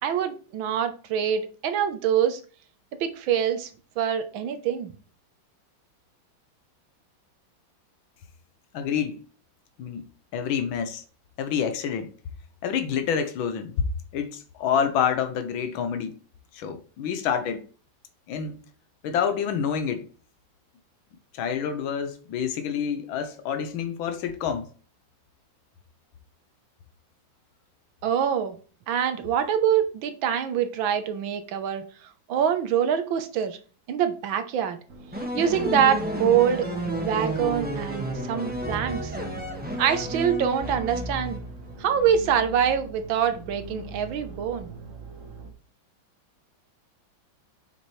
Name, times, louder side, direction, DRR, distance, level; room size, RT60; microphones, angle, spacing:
voice 1, 0.0-2.4 3.0-3.7 4.0-4.9 28.0-28.6 28.9-31.8 32.3-33.6 33.9-34.8 35.3-36.7 37.0-39.1 39.8-41.4 41.8-44.7, right 8 dB, 80° right, 1.6 m, -25 dB
voice 2, 8.7-9.2 9.8-10.0 10.3-11.0 11.4-12.1 12.6-13.8 14.1-16.2 16.5-17.6 18.3-18.6 19.0-20.0 21.3-24.7, left 7 dB, 90° left, 1.6 m, -27 dB
sound 1, 34.9-45.5, right 2 dB, 45° right, 1.3 m, -42 dB
sound 2, 35.1-41.8, equal, 5° right, 1.2 m, -32 dB
7.1 x 6.1 x 3.1 m
omnidirectional pair, 2.1 m